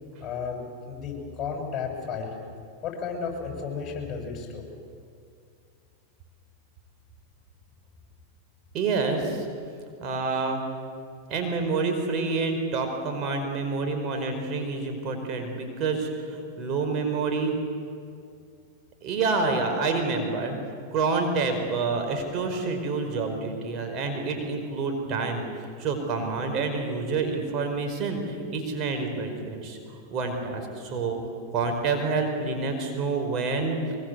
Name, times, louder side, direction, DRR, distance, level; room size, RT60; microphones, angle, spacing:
voice 1, 0.2-2.3 2.8-4.7, left 5 dB, 30° left, 2 dB, 7.9 m, -33 dB
voice 2, 8.7-9.5 10.0-10.6 11.3-17.6 19.0-20.6 20.9-25.4 25.8-31.2 31.5-33.8, right 4 dB, 40° right, 4 dB, 4.9 m, -28 dB
23.5 x 22.0 x 8.2 m, 2.3 s
hypercardioid pair, 105°, 0 cm